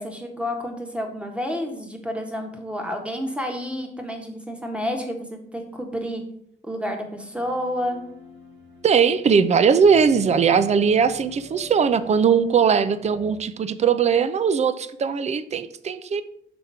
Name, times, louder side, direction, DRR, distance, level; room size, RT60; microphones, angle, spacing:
voice 1, 0.0-6.2 6.6-8.0, equal, 5° right, 3 dB, 1.3 m, -30 dB
sound 1, 7.3-13.3, left 1 dB, 65° right, 1.8 m, -45 dB
voice 2, 8.8-16.2, right 6 dB, 35° right, 13 dB, 0.5 m, -19 dB
5.9 x 3.6 x 5.6 m, 0.69 s
cardioid pair, 90°, 20 cm